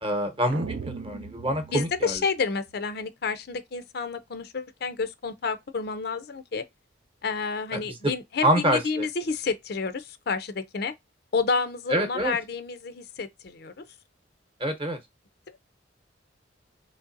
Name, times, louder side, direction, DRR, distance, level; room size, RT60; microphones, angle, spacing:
voice 1, 0.0-2.2 7.7-8.0 8.4-9.1 11.9-12.4 14.6-15.0, right 1 dB, 25° right, 0.9 m, -26 dB
sound 1, 0.5-2.8, right 5 dB, 60° right, 0.4 m, -39 dB
voice 2, 1.7-6.6 7.2-10.9 11.3-13.8, left 4 dB, 55° left, 0.5 m, -30 dB
3.8 x 3.1 x 2.5 m
head